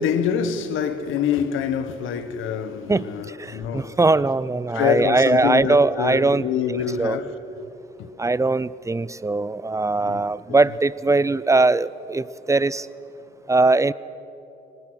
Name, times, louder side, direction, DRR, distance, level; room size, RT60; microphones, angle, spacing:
voice 1, 0.0-4.0 4.7-7.3 8.0-8.1 10.0-10.6, left 8 dB, 85° left, 1.3 m, -26 dB
voice 2, 3.4-6.5 7.0-7.2 8.2-12.9 13.5-13.9, right 3 dB, 15° right, 0.5 m, -20 dB
24.0 x 19.5 x 6.3 m
cardioid pair, 90°, 20 cm